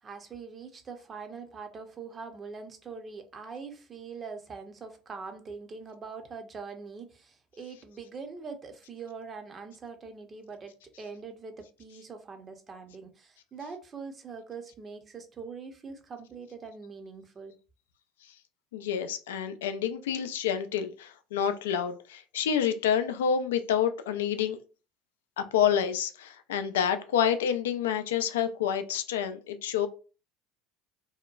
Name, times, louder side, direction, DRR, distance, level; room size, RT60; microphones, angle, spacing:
voice 1, 0.0-17.5, right 5 dB, 35° right, 0.6 m, -43 dB
voice 2, 18.7-24.6 25.4-29.9, left 8 dB, 80° left, 0.3 m, -28 dB
2.8 x 2.1 x 2.3 m
hypercardioid pair, 70°, 0 cm